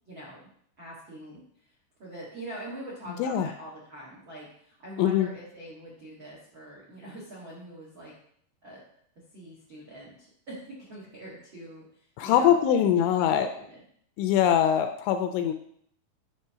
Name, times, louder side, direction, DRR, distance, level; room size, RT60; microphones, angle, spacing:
voice 1, 0.1-0.4 0.8-1.7 2.0-8.1 8.6-8.8 9.1-13.8, right 1 dB, 80° right, -6 dB, 1.1 m, -44 dB
voice 2, 5.0-5.3 12.2-13.5 14.2-15.5, left 9 dB, 80° left, 7 dB, 2.8 m, -22 dB
9.5 x 3.3 x 5.6 m, 0.66 s
omnidirectional pair, 5.6 m